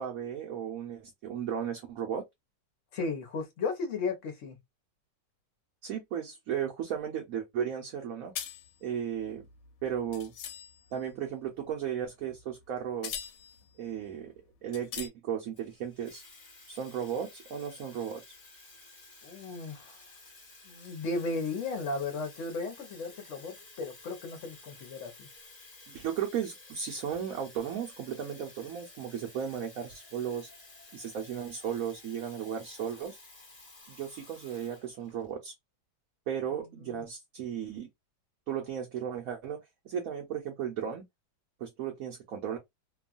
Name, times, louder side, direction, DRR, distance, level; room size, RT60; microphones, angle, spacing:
voice 1, 0.0-2.2 5.8-8.3 8.8-9.4 9.8-10.3 10.9-13.3 13.8-14.3 14.6-16.2 16.7-18.4 25.9-30.5 30.9-33.2 33.9-35.5 36.3-37.9 38.5-41.0 41.6-42.6, right 8 dB, 65° right, 1.0 m, -35 dB
voice 2, 2.9-4.6 19.2-20.0 20.6-25.3 36.8-37.0, left 3 dB, 50° left, 1.0 m, -35 dB
sound 1, 8.4-11.0 12.4-12.6 13.0-13.7 14.2-14.3 14.7-15.1, left 9 dB, 85° left, 1.3 m, -41 dB
Water tap faucet / Fill (with liquid), 15.5-35.3, left 3 dB, 30° left, 0.8 m, -53 dB
2.9 x 2.3 x 2.4 m
omnidirectional pair, 1.9 m